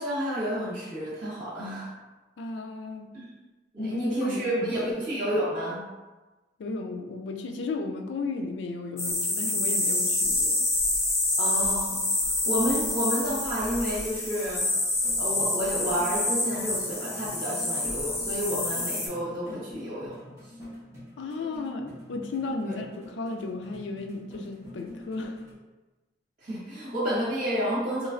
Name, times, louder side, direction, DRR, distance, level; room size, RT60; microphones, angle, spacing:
voice 1, 0.0-1.9 3.1-3.3 3.7-5.8 11.4-14.7 15.2-20.2 22.7-22.8 26.4-28.1, equal, 50° right, -7 dB, 1.2 m, -30 dB
voice 2, 2.4-3.1 3.8-4.7 6.6-10.7 21.2-25.4, left 3 dB, 90° left, 4 dB, 0.4 m, -34 dB
sound 1, 9.0-19.1, left 2 dB, 15° left, 0.5 m, -27 dB
sound 2, 14.9-25.5, left 1 dB, 15° right, 1.2 m, -46 dB
3.1 x 3.0 x 2.4 m, 1.2 s
head